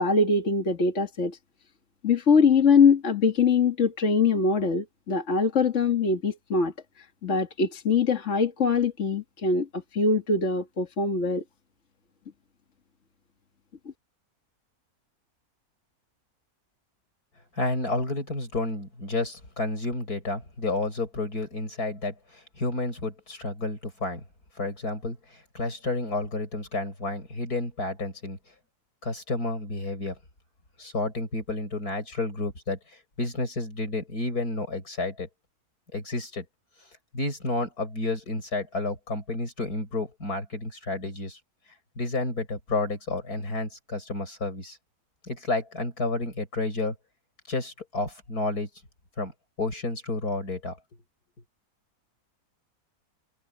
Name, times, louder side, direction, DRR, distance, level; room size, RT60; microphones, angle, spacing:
voice 1, 0.0-1.4 2.0-6.7 7.2-11.4, left 4 dB, 50° left, 2.2 m, -23 dB
voice 2, 17.5-24.2 24.6-28.4 29.0-30.2 30.8-32.8 33.2-35.3 35.9-36.5 37.1-41.4 42.0-44.8 45.2-46.9 47.5-48.7 49.2-49.3 49.6-50.8, left 2 dB, 85° left, 7.3 m, -30 dB
omnidirectional pair, 1.6 m